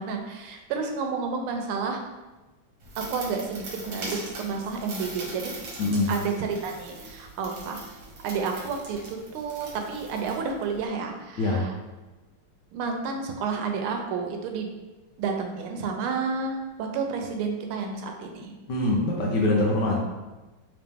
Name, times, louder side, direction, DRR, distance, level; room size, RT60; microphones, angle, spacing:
voice 1, 0.0-2.0 3.0-5.5 6.1-7.8 8.2-11.7 12.7-14.7 15.2-18.5, right 5 dB, 90° right, 3 dB, 1.5 m, -30 dB
sound 1, 2.8-10.9, right 2 dB, 65° right, 1.5 m, -41 dB
voice 2, 5.8-6.1 11.4-11.7 18.7-20.0, left 2 dB, 70° left, -2 dB, 1.1 m, -23 dB
3.4 x 2.9 x 3.4 m, 1.1 s
omnidirectional pair, 2.3 m